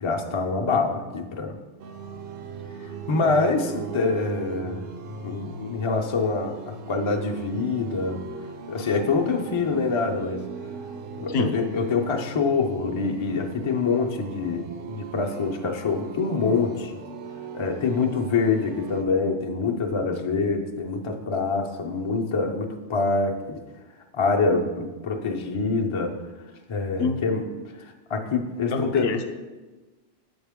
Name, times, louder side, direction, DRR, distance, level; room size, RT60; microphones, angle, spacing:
voice 1, 0.0-1.5 3.1-4.8 5.2-8.2 8.7-10.4 11.1-17.0 17.5-23.6 24.1-26.2 26.7-27.4 27.8-29.1, left 4 dB, 45° left, 1 dB, 0.4 m, -25 dB
sound 1, 1.8-19.0, right 5 dB, 60° right, 0.6 m, -39 dB
voice 2, 28.7-29.2, left 4 dB, 65° left, 6 dB, 0.8 m, -25 dB
7.2 x 4.3 x 3.5 m, 1.2 s
omnidirectional pair, 1.1 m